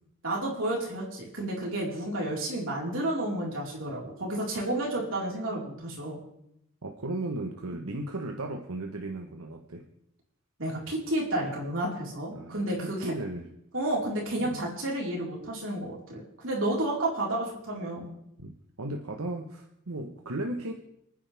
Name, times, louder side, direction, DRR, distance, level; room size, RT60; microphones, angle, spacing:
voice 1, 0.2-6.2 10.6-13.1 13.7-18.1, right 1 dB, 60° right, -3 dB, 4.5 m, -31 dB
voice 2, 6.8-9.8 12.3-13.5 14.4-14.6 18.4-20.7, right 2 dB, 90° right, 2 dB, 1.2 m, -36 dB
28.5 x 10.0 x 3.5 m, 0.80 s
head